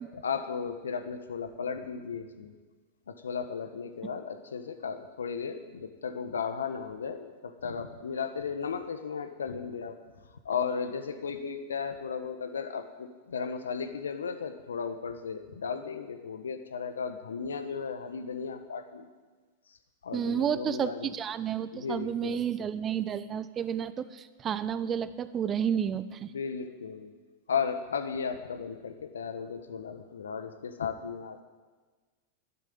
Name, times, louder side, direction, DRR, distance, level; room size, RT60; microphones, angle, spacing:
voice 1, 0.1-2.5 3.1-10.0 10.4-19.1 19.7-19.8 20.0-21.1 21.7-22.4 26.3-27.1 27.5-31.4, left 6 dB, 80° left, 9 dB, 1.3 m, -35 dB
voice 2, 20.1-26.3, right 8 dB, 30° right, 14 dB, 0.9 m, -31 dB
12.0 x 11.5 x 8.8 m, 1.3 s
hypercardioid pair, 100°, 0 cm